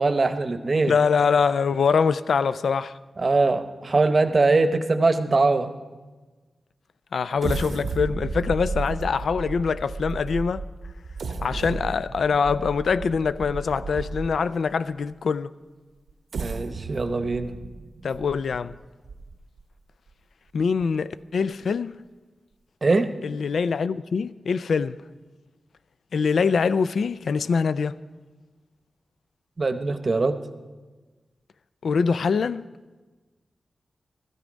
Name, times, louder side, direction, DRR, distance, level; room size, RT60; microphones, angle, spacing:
voice 1, 0.0-0.9 3.2-5.7 16.4-17.5 22.8-23.1 29.6-30.4, right 3 dB, 35° right, 0.8 m, -22 dB
voice 2, 0.9-2.9 7.1-10.6 11.4-15.5 18.0-18.7 20.5-21.9 23.2-25.0 26.1-27.9 31.8-32.6, left 5 dB, 80° left, 0.4 m, -24 dB
sound 1, 7.4-14.5 15.1-15.2 16.1-19.6 20.1-20.2 20.6-20.8, right 4 dB, 90° right, 0.9 m, -33 dB
16.5 x 14.0 x 5.1 m
wide cardioid pair, 145°, 0 cm